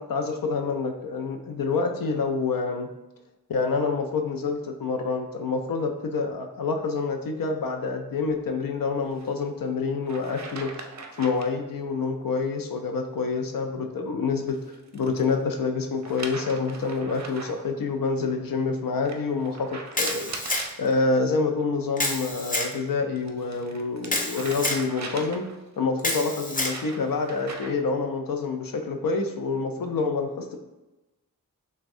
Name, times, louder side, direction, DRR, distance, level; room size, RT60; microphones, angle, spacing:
voice 1, 0.0-2.9 3.5-10.7 11.2-14.6 14.9-20.3 20.8-25.4 25.8-30.6, left 4 dB, 75° left, 4 dB, 0.6 m, -27 dB
sound 1, 9.0-9.3 10.1-11.6 14.4-15.3 16.0-17.7 19.0-20.8 22.9-25.7 26.3-27.9, right 3 dB, 50° right, 0.6 m, -40 dB
Camera, 19.9-20.9 22.0-22.7 24.1-24.8 26.0-26.8, left 2 dB, 25° left, 0.8 m, -28 dB
5.9 x 2.2 x 2.6 m, 1.0 s
cardioid pair, 55°, 34 cm